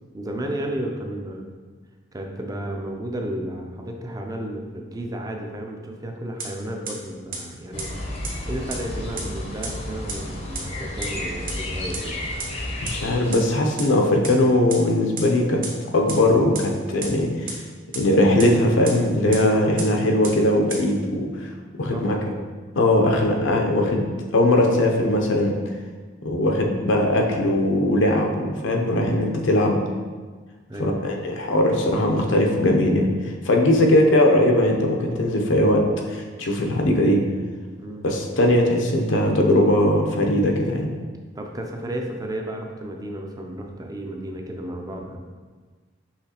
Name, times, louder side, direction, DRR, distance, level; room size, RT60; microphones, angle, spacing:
voice 1, 0.1-1.5 2.1-7.9 8.2-12.2 21.9-22.5 30.7-31.1 33.8-34.0 37.8-38.1 41.4-45.2, right 1 dB, 20° right, 2 dB, 0.4 m, -33 dB
sound 1, 6.4-6.5 6.9-7.0 7.3-7.4 7.8-7.9 8.2-8.3 8.7-8.8 9.2-9.3 9.6-9.7 10.1-10.2 10.5-10.6 11.0-11.1 11.5-11.6 11.9-12.0 12.4-12.5 12.9-13.0 13.3-13.4 13.8-13.9 14.2-14.3 14.7-14.8 15.2-15.3 15.6-15.7 16.1-16.2 16.5-16.6 17.0-17.1 17.5-17.6 17.9-18.0 18.4-18.5 18.8-18.9 19.3-19.4 19.8-19.9 20.2-20.3 20.7-20.8, right 5 dB, 50° right, 0.9 m, -30 dB
sound 2, 7.7-13.4, left 1 dB, 35° left, 0.6 m, -32 dB
voice 2, 12.8-15.6 15.9-17.6 17.9-21.5 21.8-22.2 22.8-24.1 24.3-25.6 26.2-29.8 30.8-37.2 38.0-40.9, left 1 dB, 75° left, 1 dB, 0.6 m, -20 dB
5.7 x 3.1 x 2.9 m, 1.5 s
head